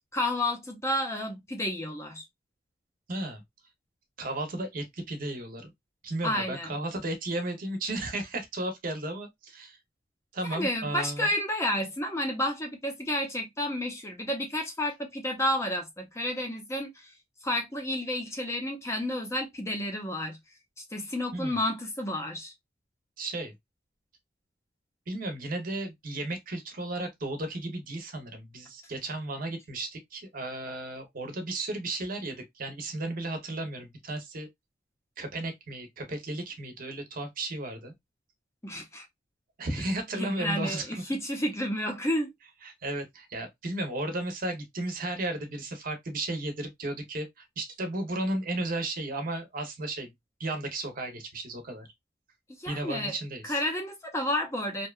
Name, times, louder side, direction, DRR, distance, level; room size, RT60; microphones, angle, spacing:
voice 1, 0.0-2.2 6.2-6.7 10.4-17.1 17.4-20.4 20.8-22.5 38.6-39.1 40.2-42.3 52.6-53.2 53.4-54.9, left 1 dB, 15° left, 0.5 m, -31 dB
voice 2, 3.1-3.4 4.2-5.7 6.0-9.8 10.3-11.3 21.3-21.6 23.2-23.5 25.1-34.5 35.2-37.9 39.6-41.1 42.6-50.1 50.4-51.9 52.7-53.6, right 2 dB, 50° right, 0.7 m, -34 dB
2.7 x 2.2 x 2.2 m
head